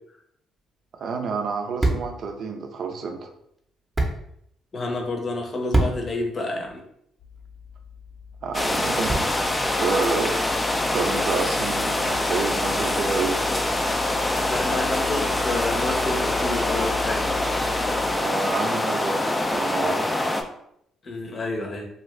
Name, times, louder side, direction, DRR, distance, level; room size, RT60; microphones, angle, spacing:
sound 1, 0.6-9.6, right 2 dB, 20° right, 0.7 m, -31 dB
voice 1, 1.0-3.3 8.4-9.3 9.6-10.4 10.9-13.4 18.2-20.1, right 4 dB, 60° right, 4 dB, 0.5 m, -28 dB
voice 2, 4.7-6.8 14.5-17.4 21.0-21.9, left 2 dB, 45° left, 1 dB, 0.8 m, -29 dB
sound 2, 7.2-18.2, left 7 dB, 70° left, 0.5 m, -38 dB
sound 3, 8.5-20.4, left 1 dB, 20° left, 0.4 m, -24 dB
2.5 x 2.4 x 3.1 m, 0.73 s
supercardioid pair, 65°, 0 cm